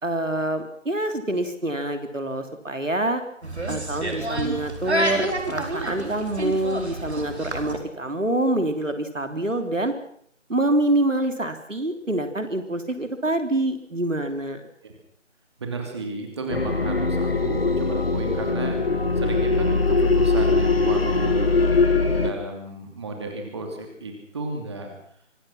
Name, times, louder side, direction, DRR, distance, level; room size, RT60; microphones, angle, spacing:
voice 1, 0.0-3.2 3.7-9.9 10.5-14.6, right 1 dB, 80° right, 7 dB, 3.4 m, -26 dB
sound 1, 3.4-7.8, right 1 dB, 60° right, 4.8 m, -28 dB
voice 2, 15.6-21.6 22.1-24.9, right 3 dB, 20° right, 3 dB, 3.0 m, -33 dB
sound 2, 16.5-22.3, left 3 dB, 50° left, 2.2 m, -21 dB
25.0 x 19.5 x 5.9 m, 0.66 s
figure-of-eight pair, 160°, 38 cm